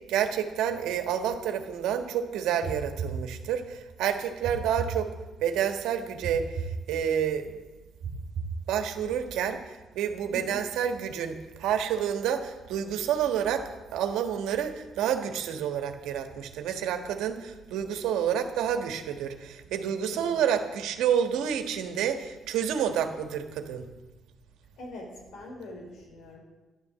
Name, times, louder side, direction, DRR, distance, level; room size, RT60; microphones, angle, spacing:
voice 1, 0.1-5.1 5.4-7.5 8.7-23.8, right 8 dB, 90° right, 7 dB, 1.5 m, -29 dB
sound 1, 2.6-3.8 4.4-5.6 6.2-7.4 8.0-9.2, right 5 dB, 55° right, 2.2 m, -36 dB
voice 2, 10.3-10.6 20.1-20.6 24.8-26.4, left 1 dB, 80° left, 0 dB, 5.0 m, -43 dB
12.5 x 11.0 x 7.6 m, 1.2 s
cardioid pair, 90°, 0 cm